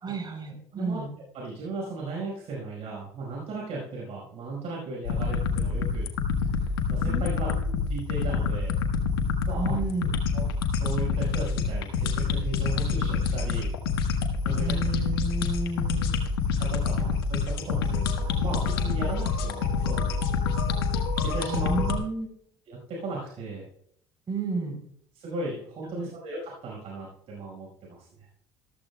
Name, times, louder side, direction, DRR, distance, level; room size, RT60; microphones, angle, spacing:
voice 1, 0.0-1.1 7.0-7.6 9.6-10.2 14.6-16.2 21.5-22.3 24.3-24.8 25.8-26.1, right 3 dB, 35° right, 5 dB, 3.6 m, -32 dB
voice 2, 1.3-6.1 6.9-7.5 7.9-8.7 9.5-9.8 10.3-13.7 14.4-14.7 16.6-20.4 21.1-21.7 22.7-23.6 25.1-28.1, right 3 dB, 55° right, -3 dB, 5.0 m, -36 dB
sound 1, 5.0-22.0, left 5 dB, 80° left, 1.3 m, -27 dB
14.0 x 13.5 x 2.2 m, 0.67 s
hypercardioid pair, 65°, 12 cm